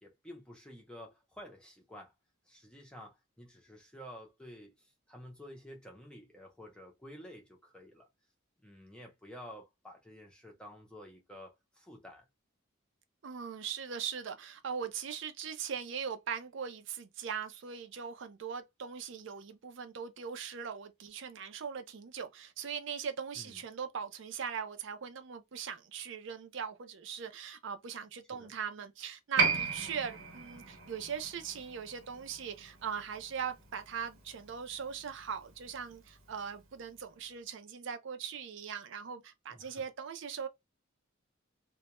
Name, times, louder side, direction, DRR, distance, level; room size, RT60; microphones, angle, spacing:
voice 1, 0.0-2.1 2.5-8.1 8.6-12.3 23.4-23.6 28.3-28.5 39.5-39.8, equal, 5° left, 0.5 m, -51 dB
voice 2, 13.2-40.5, right 7 dB, 60° right, 0.4 m, -40 dB
Piano, 29.4-36.3 36.6-36.7, right 5 dB, 75° right, 0.8 m, -36 dB
2.2 x 2.1 x 2.9 m
head